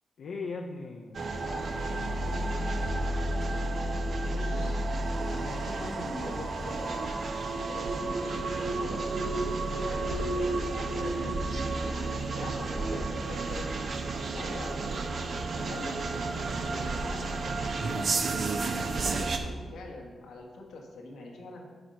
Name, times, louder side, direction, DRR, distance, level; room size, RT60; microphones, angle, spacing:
voice 1, 0.2-2.6 12.3-12.5, left 4 dB, 70° left, 1 dB, 0.7 m, -41 dB
sound 1, 1.1-19.4, right 2 dB, 60° right, 0.7 m, -31 dB
voice 2, 4.3-4.8 5.3-7.1 7.6-9.1 9.7-11.5 12.4-13.7 14.3-14.8 15.6-16.0 16.6-17.8 18.8-21.7, left 2 dB, 90° left, 0 dB, 1.3 m, -43 dB
9.0 x 4.4 x 5.3 m, 1.5 s
cardioid pair, 80°, 0 cm